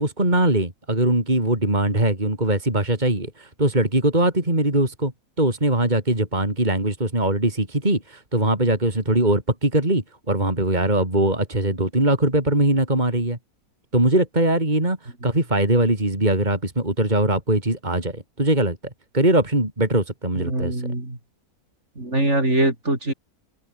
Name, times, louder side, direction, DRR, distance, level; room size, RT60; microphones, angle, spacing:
voice 1, 0.0-5.1 5.4-13.4 13.9-18.8 19.1-20.8, right 1 dB, 25° right, 4.9 m, -21 dB
voice 2, 20.4-21.2 22.0-23.1, right 1 dB, 45° right, 6.3 m, -23 dB
omnidirectional pair, 1.7 m